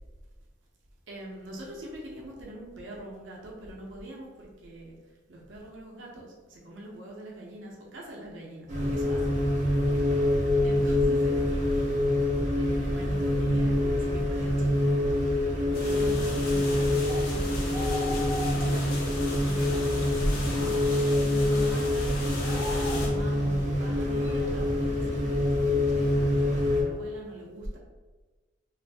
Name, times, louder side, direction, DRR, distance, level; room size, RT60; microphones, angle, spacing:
voice 1, 1.1-5.0 5.3-6.3 6.6-9.2 10.6-11.4 12.6-14.9 15.8-17.7 19.3-20.0 21.2-27.8, right 1 dB, 65° right, -2 dB, 0.6 m, -43 dB
sound 1, 8.7-26.8, left 1 dB, 35° right, 0.7 m, -26 dB
sound 2, 15.7-23.1, left 1 dB, 50° left, 0.7 m, -38 dB
sound 3, 17.1-17.3 17.7-19.0 19.6-19.7 20.3-20.9 22.1-23.5 24.2-24.3, left 2 dB, 10° right, 0.4 m, -38 dB
2.5 x 2.5 x 3.3 m, 1.3 s
head